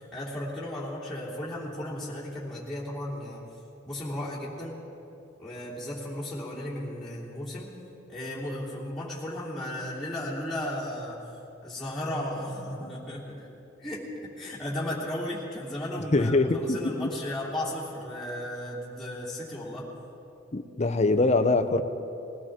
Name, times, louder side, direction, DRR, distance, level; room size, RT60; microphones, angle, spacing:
voice 1, 0.0-3.4 3.8-4.8 5.4-7.7 8.1-11.2 11.6-13.5 13.8-19.9, left 1 dB, ahead, -10 dB, 2.9 m, -35 dB
voice 2, 16.1-17.1 20.5-21.8, left 2 dB, 35° left, 8 dB, 0.7 m, -23 dB
21.0 x 17.5 x 3.7 m, 2.9 s
head